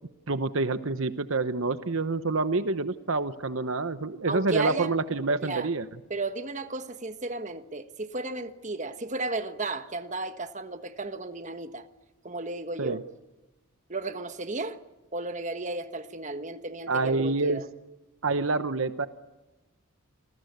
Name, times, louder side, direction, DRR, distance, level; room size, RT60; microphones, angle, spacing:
voice 1, 0.3-5.9 12.8-13.0 16.9-17.6 18.2-19.1, right 3 dB, 60° right, 0.9 m, -27 dB
voice 2, 4.3-4.9 5.4-5.7 6.1-11.8 12.2-13.0 13.9-14.8 15.1-17.6, right 2 dB, 35° right, 1.3 m, -34 dB
28.5 x 20.0 x 9.4 m
head